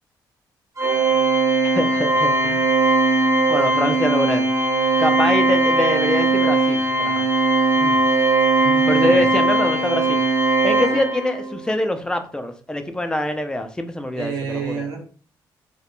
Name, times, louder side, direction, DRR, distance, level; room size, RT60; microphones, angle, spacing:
Organ, 0.8-11.5, right 3 dB, 40° right, 0.7 m, -19 dB
voice 1, 1.8-2.7 3.5-4.5 5.0-7.3 7.8-8.0 8.9-10.2 10.6-14.8, left 1 dB, 10° left, 7 dB, 0.4 m, -24 dB
voice 2, 8.6-9.2 14.1-15.0, right 6 dB, 90° right, -2 dB, 0.9 m, -29 dB
2.3 x 2.0 x 2.9 m, 0.43 s
supercardioid pair, 65°, 9 cm